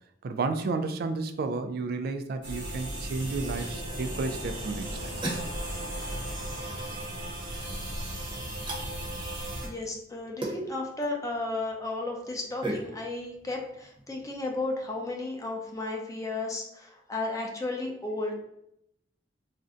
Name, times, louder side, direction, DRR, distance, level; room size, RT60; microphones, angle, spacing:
voice 1, 0.2-5.1, right 3 dB, 55° right, 8 dB, 0.3 m, -32 dB
sound 1, 2.4-9.7, right 1 dB, 80° right, 1.1 m, -36 dB
Waves surf, 3.4-8.9, left 2 dB, 80° left, 0.5 m, -47 dB
sound 2, 4.8-15.7, right 1 dB, 30° right, 0.8 m, -41 dB
voice 2, 9.6-18.3, left 2 dB, 20° left, 1 dB, 0.5 m, -34 dB
2.6 x 2.1 x 3.6 m, 0.77 s
head